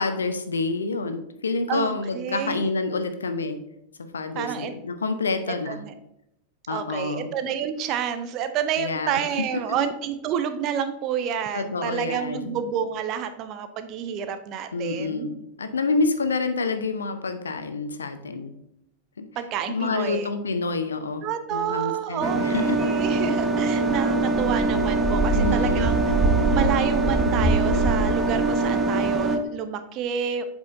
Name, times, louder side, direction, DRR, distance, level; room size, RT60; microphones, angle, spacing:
voice 1, 0.0-3.6 4.1-5.8 6.7-7.3 8.8-9.2 11.5-12.6 14.7-18.5 19.2-19.3 19.7-21.2 21.5-22.8 25.3-25.9, left 3 dB, 70° left, 9 dB, 0.8 m, -28 dB
voice 2, 1.7-2.6 4.4-4.7 5.7-5.9 6.7-15.3 19.4-20.3 21.2-26.0 26.5-30.4, right 8 dB, 40° right, 10 dB, 0.6 m, -29 dB
sound 1, 22.2-29.4, right 3 dB, 10° right, 1.1 m, -22 dB
8.4 x 6.3 x 2.6 m, 0.80 s
figure-of-eight pair, 90°, 0 cm